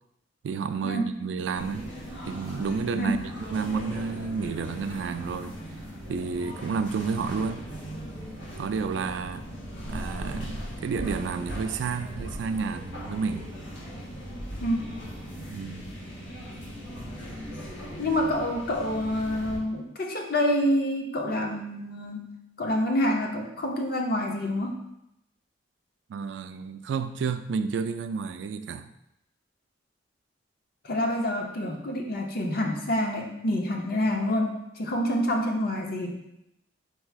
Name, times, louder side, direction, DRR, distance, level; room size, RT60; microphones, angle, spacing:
voice 1, 0.4-1.9 2.3-5.5 6.1-7.6 8.6-9.4 9.9-13.5 15.5-15.9 26.1-28.9, right 5 dB, 75° right, 10 dB, 0.3 m, -31 dB
sound 1, 1.6-19.6, equal, 85° left, 1.3 m, -39 dB
voice 2, 14.6-14.9 17.9-22.3 22.6-24.8 30.8-36.2, left 1 dB, 55° left, 1 dB, 0.7 m, -27 dB
4.6 x 2.4 x 4.5 m, 0.82 s
head